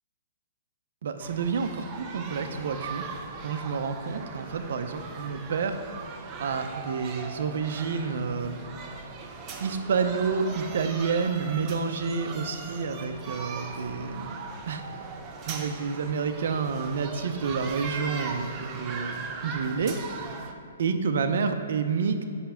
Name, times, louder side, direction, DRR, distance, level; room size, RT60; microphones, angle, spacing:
voice 1, 1.0-3.0 3.4-5.8 6.4-8.6 9.6-14.4 14.7-14.8 15.5-20.0 20.8-22.2, right 5 dB, 60° right, 7 dB, 0.7 m, -29 dB
sound 1, 1.2-20.5, right 4 dB, 20° right, 0.7 m, -39 dB
8.3 x 5.8 x 5.7 m, 2.4 s
hypercardioid pair, 165°, 0 cm